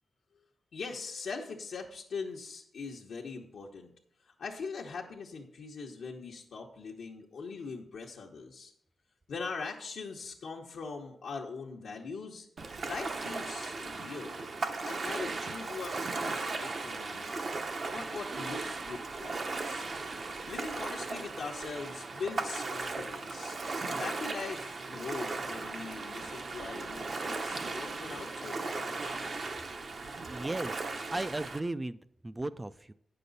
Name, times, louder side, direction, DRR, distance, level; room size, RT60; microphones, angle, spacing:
voice 1, 0.7-3.9 4.2-8.7 9.3-12.5 12.8-14.4 14.8-17.5 17.9-19.9 20.5-29.2, left 4 dB, 80° left, -3 dB, 1.0 m, -41 dB
Ocean, 12.6-31.6, right 3 dB, 50° right, 0.8 m, -37 dB
voice 2, 30.3-32.0 32.2-32.9, right 2 dB, 15° right, 12 dB, 0.3 m, -36 dB
9.4 x 6.8 x 4.0 m, 0.68 s
wide cardioid pair, 115°, 0 cm